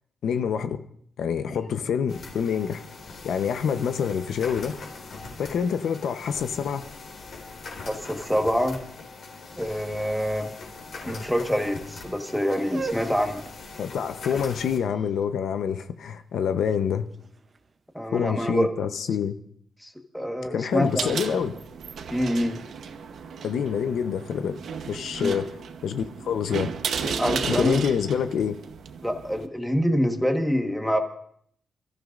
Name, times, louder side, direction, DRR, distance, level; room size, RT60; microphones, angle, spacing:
voice 1, 0.2-0.8 1.2-2.8 3.2-4.8 5.4-6.9 13.8-17.1 18.1-19.4 20.5-21.5 23.4-24.6 24.9-25.5 25.8-26.7 27.4-28.6, left 7 dB, 75° left, 0.8 m, -26 dB
sound 1, 2.1-14.8, left 3 dB, 60° left, 4.2 m, -41 dB
voice 2, 7.8-8.8 9.5-10.5 11.0-13.4 17.9-18.7 19.8-21.1 22.1-22.6 25.2-25.4 27.0-27.9 29.0-31.0, equal, ahead, 1.4 m, -26 dB
sound 2, 12.6-18.5, right 4 dB, 35° right, 0.7 m, -41 dB
sound 3, 20.7-29.5, right 6 dB, 65° right, 1.0 m, -34 dB
28.5 x 14.5 x 2.6 m
wide cardioid pair, 165°, 0 cm